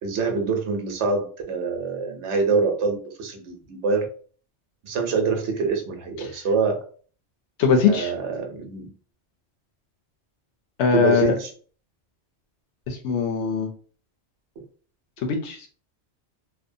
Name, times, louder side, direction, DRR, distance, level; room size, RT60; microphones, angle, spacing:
voice 1, 0.0-4.1 4.8-6.8 7.9-8.9 10.9-11.5, right 4 dB, 90° right, 3 dB, 1.0 m, -25 dB
voice 2, 7.6-8.1 10.8-11.3 12.9-13.7 15.2-15.7, left 6 dB, 85° left, 3 dB, 0.9 m, -21 dB
2.6 x 2.2 x 2.5 m, 0.42 s
omnidirectional pair, 1.1 m